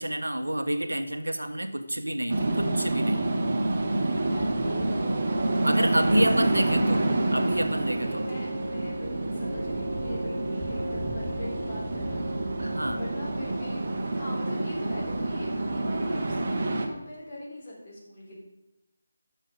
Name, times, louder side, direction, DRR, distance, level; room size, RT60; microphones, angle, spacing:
voice 1, 0.0-3.2 5.6-7.0 7.3-8.3 12.6-13.1, right 1 dB, 75° right, 7 dB, 1.0 m, -28 dB
sound 1, 2.3-16.9, right 2 dB, 35° right, 1.3 m, -28 dB
voice 2, 4.2-7.2 8.0-13.8 14.1-18.3, left 1 dB, 30° left, -5 dB, 3.4 m, -41 dB
sound 2, 4.2-14.4, right 1 dB, 20° right, 2.3 m, -38 dB
11.5 x 6.6 x 5.1 m, 0.92 s
figure-of-eight pair, 155°, 0 cm